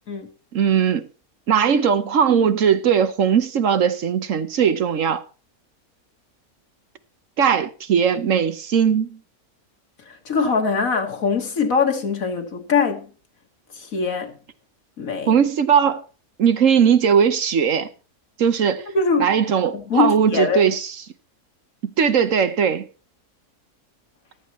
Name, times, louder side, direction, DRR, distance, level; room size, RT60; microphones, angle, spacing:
voice 1, 0.5-1.0 1.5-5.2 7.4-9.2 15.3-16.0 16.4-17.9 18.4-18.9 19.2-21.0 21.8-22.9, right 7 dB, 60° right, 1.2 m, -19 dB
voice 2, 10.1-13.1 13.7-14.4 15.0-15.3 18.9-19.3 19.7-20.8, left 5 dB, 65° left, 2.0 m, -22 dB
14.5 x 12.0 x 3.1 m
omnidirectional pair, 1.6 m